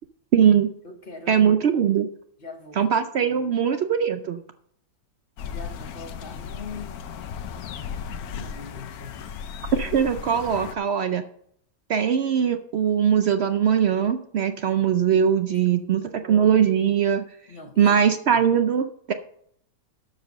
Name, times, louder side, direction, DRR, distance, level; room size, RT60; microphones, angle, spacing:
voice 1, 0.3-0.7 1.3-2.1 2.8-4.4 9.7-11.2 11.9-17.2 17.8-19.1, right 8 dB, 85° right, 8 dB, 0.5 m, -21 dB
voice 2, 0.8-1.6 2.4-2.9 3.3-3.7 5.5-7.1 8.1-9.2 15.6-16.1 17.5-17.9 18.3-18.4, left 3 dB, 35° left, 5 dB, 1.2 m, -42 dB
sound 1, 5.4-10.7, left 7 dB, 70° left, 1.1 m, -36 dB
12.5 x 4.9 x 6.6 m, 0.68 s
omnidirectional pair, 1.8 m